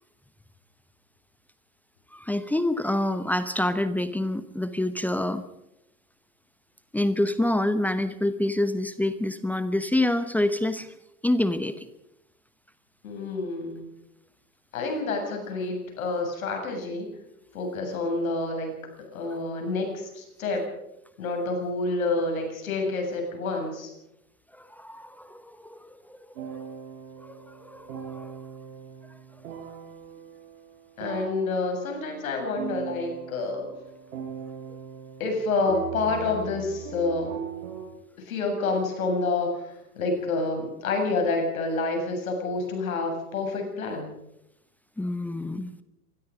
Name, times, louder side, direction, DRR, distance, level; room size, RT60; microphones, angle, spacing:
voice 1, 2.1-5.4 6.9-10.9 11.2-11.9 24.5-26.2 27.2-28.3 45.0-45.7, left 1 dB, 5° left, 12 dB, 1.0 m, -27 dB
voice 2, 13.0-13.9 14.7-17.1 17.5-18.7 19.1-20.6 21.2-23.9 31.0-33.6 35.2-37.3 38.2-44.1, left 3 dB, 65° left, 3 dB, 7.9 m, -28 dB
sound 1, 26.4-37.9, right 7 dB, 65° right, 7.2 m, -39 dB
26.0 x 21.0 x 5.2 m, 0.86 s
figure-of-eight pair, 100°, 45 cm